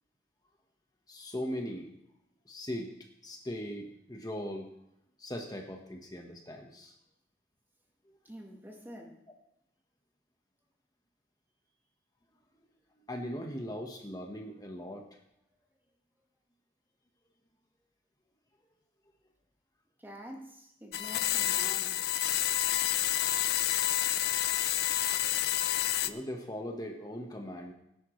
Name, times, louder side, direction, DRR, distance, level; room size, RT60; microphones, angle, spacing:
voice 1, 1.1-1.9 2.4-2.9 3.2-4.7 5.2-6.9 13.1-15.1 26.0-27.7, equal, 20° left, 1.3 m, -39 dB
voice 2, 8.2-9.2 20.0-22.1, right 1 dB, 10° right, 1.5 m, -47 dB
sound 1, 20.9-26.1, left 13 dB, 60° left, 0.5 m, -29 dB
17.5 x 10.5 x 3.2 m
head